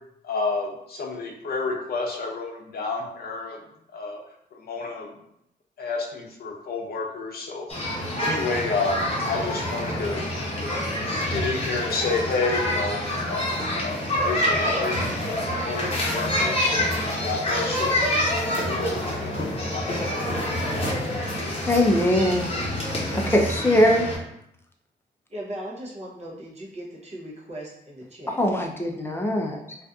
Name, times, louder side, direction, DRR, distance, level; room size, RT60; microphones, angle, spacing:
voice 1, 0.2-3.6 3.9-4.2 4.5-5.1 5.8-7.7 8.2-10.2 10.6-10.7 11.3-16.6 17.2-18.1 18.4-18.9 19.2-20.2, left 3 dB, 55° left, 0 dB, 0.6 m, -30 dB
sound 1, 7.7-24.2, left 1 dB, 30° left, 0.9 m, -27 dB
voice 2, 21.7-22.5 23.1-24.1 28.4-29.8, left 1 dB, 15° left, 1 dB, 0.4 m, -21 dB
voice 3, 25.3-28.4, right 1 dB, 35° right, -5 dB, 0.7 m, -38 dB
2.5 x 2.4 x 2.3 m, 0.77 s
cardioid pair, 85°, 18 cm